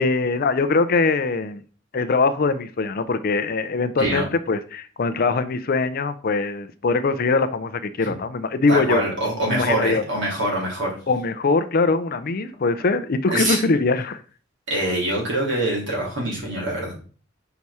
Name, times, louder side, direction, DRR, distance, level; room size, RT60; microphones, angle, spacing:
voice 1, 0.0-1.6 1.9-9.0 9.5-10.0 11.1-14.2, left 3 dB, 50° left, 12 dB, 0.5 m, -22 dB
voice 2, 8.7-11.0 13.3-13.6 14.7-16.9, right 1 dB, 70° right, -3 dB, 2.9 m, -24 dB
5.8 x 4.7 x 4.1 m, 0.40 s
head